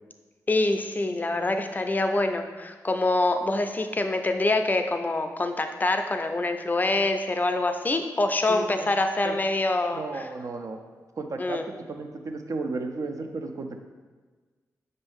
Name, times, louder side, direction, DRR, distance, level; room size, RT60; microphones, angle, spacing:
voice 1, 0.5-10.3 11.4-11.6, left 2 dB, 25° left, 6 dB, 0.4 m, -25 dB
voice 2, 8.5-8.9 9.2-9.4 9.9-10.8 11.2-11.6 11.9-13.8, right 3 dB, 55° right, 5 dB, 0.5 m, -34 dB
5.3 x 2.6 x 3.6 m, 1.4 s
cardioid pair, 60°, 7 cm